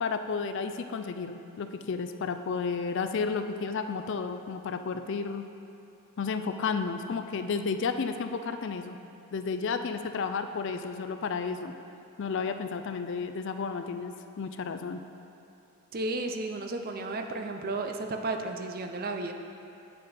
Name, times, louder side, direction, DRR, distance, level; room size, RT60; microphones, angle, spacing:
voice 1, 0.0-5.5 6.2-9.0 9.3-11.7 12.2-15.0, left 5 dB, 60° left, 8 dB, 0.4 m, -32 dB
voice 2, 15.9-19.3, right 2 dB, 45° right, 4 dB, 0.5 m, -33 dB
8.3 x 6.6 x 4.2 m, 2.8 s
head